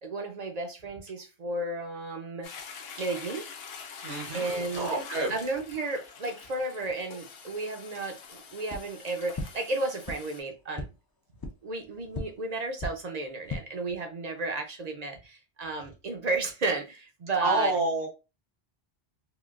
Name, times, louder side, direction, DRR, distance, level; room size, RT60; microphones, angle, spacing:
voice 1, 0.0-2.5 3.0-3.4 4.3-5.0 5.3-10.9 11.6-17.7, right 2 dB, 50° right, 0.5 m, -33 dB
Toilet flush, 2.4-10.4, left 5 dB, 70° left, 0.8 m, -45 dB
voice 2, 4.0-5.3 17.4-18.1, right 2 dB, 85° right, 1.4 m, -28 dB
sound 1, 8.7-8.8 9.3-9.4 10.0-10.1 10.7-10.8 11.4-11.5 12.1-12.2 12.8-12.9 13.3-13.6, left 2 dB, 35° left, 0.3 m, -34 dB
3.7 x 2.3 x 2.4 m
omnidirectional pair, 1.1 m